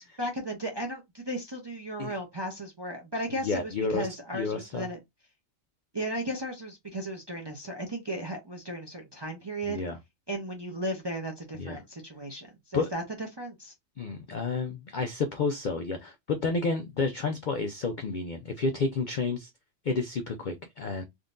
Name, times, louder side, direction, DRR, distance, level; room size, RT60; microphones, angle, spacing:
voice 1, 0.0-5.0 5.9-9.8 10.3-13.7, right 1 dB, 35° right, 0.4 m, -35 dB
voice 2, 3.4-4.1 4.3-4.9 9.7-10.0 11.6-11.8 12.7-12.9 14.0-19.5 19.8-21.0, left 4 dB, 75° left, 0.4 m, -30 dB
3.7 x 2.6 x 2.4 m
omnidirectional pair, 1.4 m